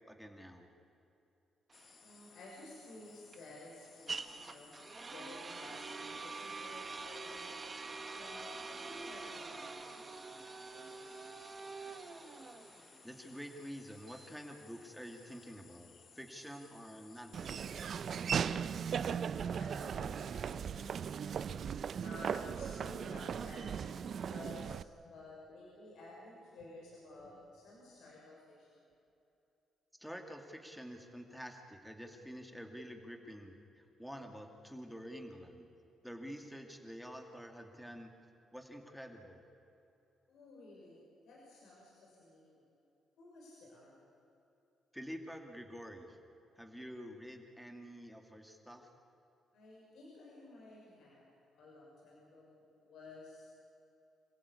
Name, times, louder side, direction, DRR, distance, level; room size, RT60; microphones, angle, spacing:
voice 1, 0.1-0.7 13.0-17.8 30.0-35.7 36.0-38.1 38.5-39.5 44.9-46.2 46.6-48.9, equal, ahead, 4 dB, 2.6 m, -48 dB
sound 1, 1.7-18.3, left 6 dB, 50° left, 1.3 m, -61 dB
sound 2, 1.7-15.5, right 4 dB, 30° right, 1.5 m, -46 dB
voice 2, 2.0-4.7 5.1-7.4 8.1-11.4 19.0-21.6 22.0-28.9 40.3-42.7 43.2-44.1 49.5-51.3 51.5-53.5, left 2 dB, 75° left, -4 dB, 6.2 m, -54 dB
Laughter / Walk footsteps, 17.3-24.8, right 7 dB, 55° right, 0.6 m, -37 dB
27.5 x 16.0 x 8.6 m, 2.8 s
cardioid pair, 90°, 0 cm